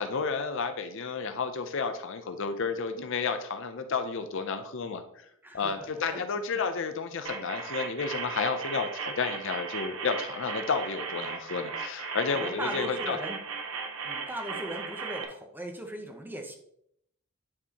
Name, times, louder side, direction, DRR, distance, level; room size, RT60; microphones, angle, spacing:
voice 1, 0.0-5.3 5.5-13.2, left 5 dB, 60° left, 8 dB, 0.6 m, -31 dB
voice 2, 5.4-6.2 12.3-13.4 14.0-16.5, right 1 dB, 10° right, 3 dB, 0.7 m, -38 dB
sound 1, 7.2-15.2, right 5 dB, 75° right, 1.0 m, -36 dB
9.7 x 4.5 x 2.9 m, 0.71 s
head